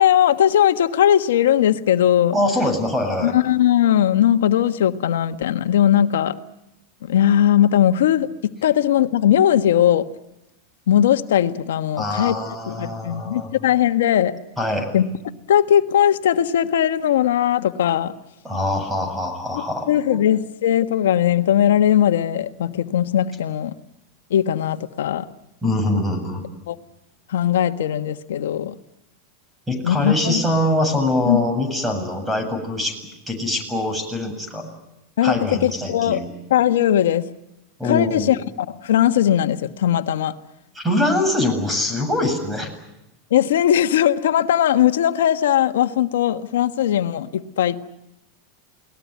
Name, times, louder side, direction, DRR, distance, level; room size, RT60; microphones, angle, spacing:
voice 1, 0.0-2.3 3.2-6.3 7.0-10.1 10.9-12.4 12.7-14.3 14.9-15.1 15.5-18.1 19.5-23.7 24.3-25.3 26.7-26.8 27.3-28.7 29.8-30.4 31.3-31.4 35.2-36.2 36.5-37.3 37.8-40.3 43.3-47.8, left 10 dB, 85° left, 9 dB, 1.4 m, -19 dB
voice 2, 2.3-3.3 12.0-13.5 14.6-14.9 18.4-19.9 25.6-26.4 29.7-32.9 33.3-34.7 35.2-36.3 37.8-38.3 40.7-42.7, left 1 dB, 10° right, 7 dB, 7.8 m, -23 dB
29.0 x 19.5 x 9.5 m, 0.91 s
hypercardioid pair, 115°, 0 cm